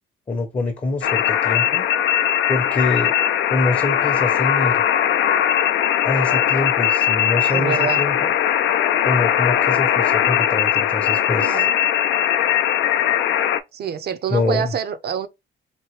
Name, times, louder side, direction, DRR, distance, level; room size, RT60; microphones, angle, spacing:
voice 1, 0.3-1.9 2.5-3.2 3.5-4.8 6.0-8.3 9.0-11.7 14.3-14.7, left 3 dB, 25° left, 0.7 m, -25 dB
sound 1, 1.0-13.6, left 10 dB, 70° left, 0.4 m, -19 dB
voice 2, 7.5-8.0 11.4-11.7 13.7-15.3, right 8 dB, 55° right, 0.5 m, -26 dB
3.0 x 2.7 x 3.1 m
cardioid pair, 90°, 20 cm